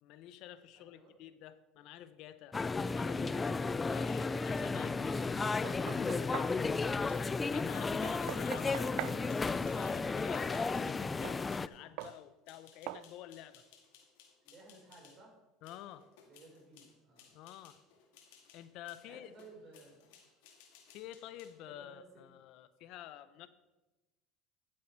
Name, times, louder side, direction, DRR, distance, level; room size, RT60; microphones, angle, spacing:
voice 1, 0.0-2.6 2.9-6.6 7.4-13.6 15.6-16.1 17.3-17.8 18.5-19.3 20.9-23.5, left 12 dB, 60° left, 13 dB, 0.6 m, -50 dB
voice 2, 0.7-1.2 14.4-15.4 16.2-17.3 19.0-20.1 21.7-22.1, right 2 dB, 40° right, -1 dB, 4.5 m, -57 dB
sound 1, 2.5-11.7, left 4 dB, 20° left, 0.3 m, -33 dB
Knock, 5.4-6.6 8.1-9.2 11.2-11.4 12.0-12.2 12.9-13.1, right 15 dB, 70° right, 0.4 m, -42 dB
sound 2, 8.5-15.2 15.6-21.6, left 7 dB, 80° left, 2.1 m, -62 dB
13.0 x 7.6 x 4.5 m, 1.1 s
supercardioid pair, 110°, 0 cm